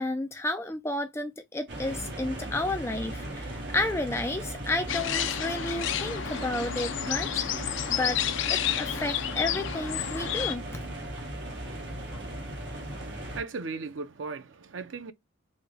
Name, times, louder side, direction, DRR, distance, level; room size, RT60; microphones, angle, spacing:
voice 1, 0.0-8.2 8.5-10.8, left 2 dB, 15° left, 0.4 m, -32 dB
sound 1, 1.7-13.4, right 1 dB, 60° right, 1.4 m, -37 dB
sound 2, 4.9-10.6, left 10 dB, 70° left, 0.4 m, -31 dB
voice 2, 12.9-15.1, right 4 dB, 75° right, 0.6 m, -37 dB
4.1 x 2.2 x 3.4 m
head